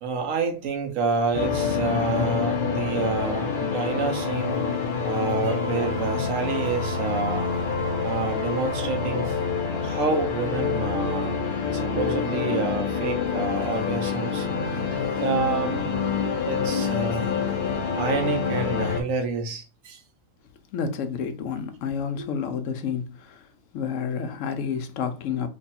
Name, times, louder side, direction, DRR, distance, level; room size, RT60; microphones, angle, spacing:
voice 1, 0.0-4.6 5.0-7.5 8.0-9.4 9.8-11.4 11.7-14.5 14.9-15.8 16.4-17.3 18.0-20.0 22.2-22.3, right 4 dB, 85° right, 1.1 m, -28 dB
sound 1, 1.3-19.0, left 5 dB, 50° left, 0.7 m, -27 dB
voice 2, 20.7-25.5, left 6 dB, 75° left, 0.9 m, -30 dB
3.1 x 2.3 x 4.1 m
omnidirectional pair, 1.3 m